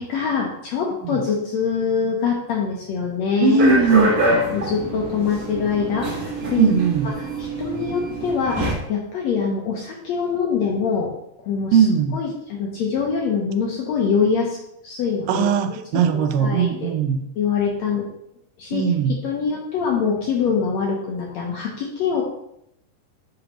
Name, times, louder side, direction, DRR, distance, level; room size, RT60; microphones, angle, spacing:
voice 1, 0.0-3.6 4.5-6.7 7.2-11.1 11.5-11.9 12.1-14.6 14.8-15.5 16.1-16.9 17.4-18.1 18.6-18.8 19.2-22.2, left 6 dB, 75° left, -1 dB, 1.6 m, -24 dB
voice 2, 3.4-4.1 6.6-7.1 11.7-12.2 15.3-17.2 18.7-19.2, right 6 dB, 85° right, 8 dB, 2.2 m, -18 dB
sound 1, 3.6-8.7, right 1 dB, 55° right, 1.0 m, -25 dB
7.7 x 5.2 x 3.0 m, 0.78 s
omnidirectional pair, 3.9 m